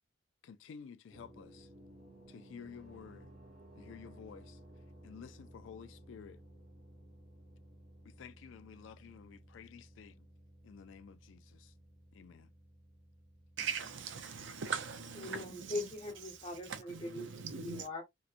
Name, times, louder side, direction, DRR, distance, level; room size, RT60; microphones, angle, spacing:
voice 1, 0.4-1.7 2.3-3.3 3.7-4.6 5.0-6.4 8.0-10.3 10.6-11.7 12.1-12.5, left 7 dB, 80° left, 0.3 m, -52 dB
sound 1, 1.1-16.8, right 1 dB, 35° right, 0.9 m, -58 dB
voice 2, 13.6-15.8 16.6-17.9, right 6 dB, 75° right, 0.6 m, -40 dB
voice 3, 15.2-17.3 17.5-18.0, left 2 dB, 35° left, 1.1 m, -41 dB
2.9 x 2.1 x 2.4 m
head